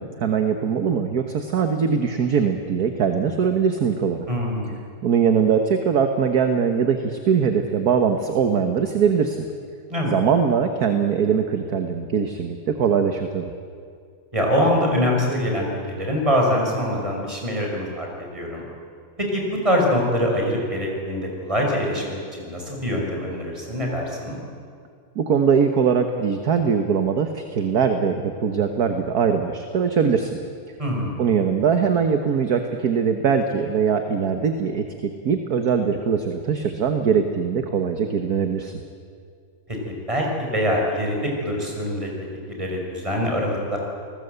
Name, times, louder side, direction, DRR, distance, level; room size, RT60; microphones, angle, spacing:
voice 1, 0.0-4.2 5.0-9.5 10.1-13.5 25.1-30.4 31.2-38.7, right 6 dB, 50° right, 6 dB, 1.6 m, -21 dB
voice 2, 4.3-4.8 9.9-10.1 14.3-18.6 19.2-24.4 30.8-31.2 39.9-42.1 42.5-43.8, equal, 15° right, -1 dB, 5.8 m, -24 dB
29.5 x 20.0 x 8.1 m, 2.2 s
omnidirectional pair, 2.3 m